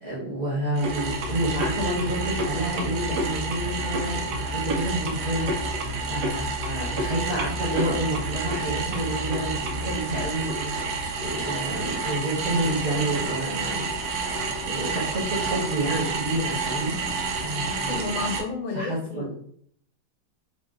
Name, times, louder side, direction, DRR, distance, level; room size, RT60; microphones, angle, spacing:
voice 1, 0.0-5.5 6.0-13.8 14.6-17.0 17.3-18.1 18.7-19.3, right 1 dB, 35° right, -9 dB, 1.2 m, -29 dB
sound 1, 0.8-18.4, right 3 dB, 80° right, 1.2 m, -29 dB
voice 2, 17.7-19.3, left 3 dB, 60° left, 3 dB, 1.0 m, -32 dB
4.1 x 3.2 x 2.4 m, 0.64 s
omnidirectional pair, 1.7 m